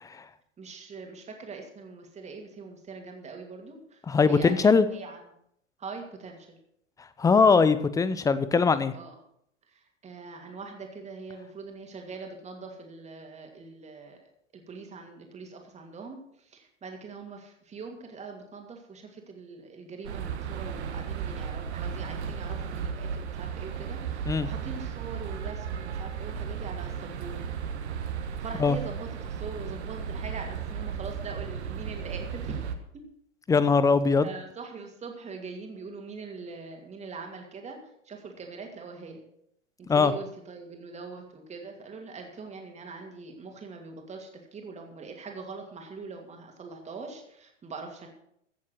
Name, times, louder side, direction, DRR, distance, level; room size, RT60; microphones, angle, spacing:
voice 1, 0.6-5.2 5.8-6.6 8.9-9.1 9.7-27.4 28.4-32.6 32.9-33.0 34.2-37.8 38.0-39.2 39.8-48.1, right 4 dB, 20° right, 3 dB, 2.5 m, -42 dB
voice 2, 4.1-4.9 7.2-8.9 24.3-24.5 28.6-28.8 33.5-34.3 39.9-40.1, left 5 dB, 10° left, 14 dB, 0.6 m, -21 dB
sound 1, 20.0-32.7, right 7 dB, 60° right, 1.6 m, -35 dB
15.0 x 7.3 x 6.4 m, 0.73 s
figure-of-eight pair, 100°, 37 cm